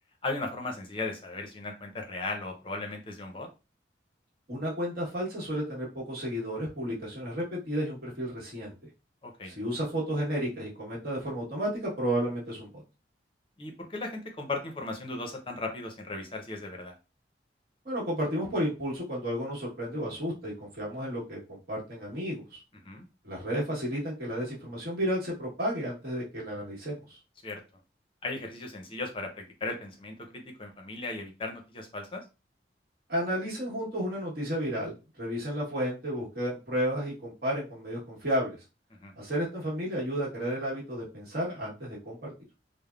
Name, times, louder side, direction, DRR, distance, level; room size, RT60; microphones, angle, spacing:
voice 1, 0.2-3.5 9.2-9.5 13.6-16.9 22.8-23.1 27.4-27.6 28.2-32.2 39.0-39.1, left 2 dB, 30° left, 2 dB, 0.6 m, -36 dB
voice 2, 4.5-8.7 9.4-12.8 17.8-22.6 23.2-27.2 33.1-38.6 39.2-42.3, equal, 55° right, -4 dB, 1.2 m, -32 dB
3.3 x 2.0 x 2.3 m, 0.29 s
head